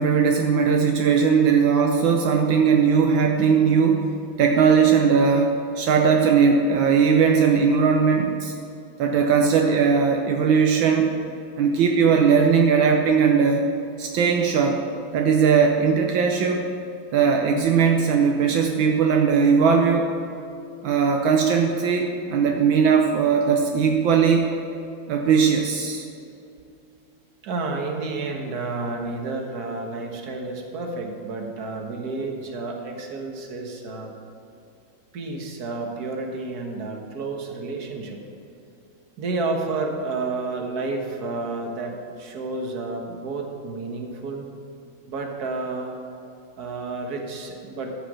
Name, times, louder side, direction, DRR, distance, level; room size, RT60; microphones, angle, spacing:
voice 1, 0.0-4.0 4.4-8.5 9.0-11.1 11.6-13.6 14.0-14.8 15.1-16.6 17.1-20.1 20.8-24.5 25.1-26.1, right 6 dB, 75° right, 2 dB, 1.5 m, -19 dB
voice 2, 27.4-34.1 35.1-38.2 39.2-44.4 45.1-46.0 46.6-48.0, right 3 dB, 55° right, 2 dB, 1.8 m, -30 dB
13.5 x 5.9 x 7.4 m, 2.6 s
omnidirectional pair, 2.2 m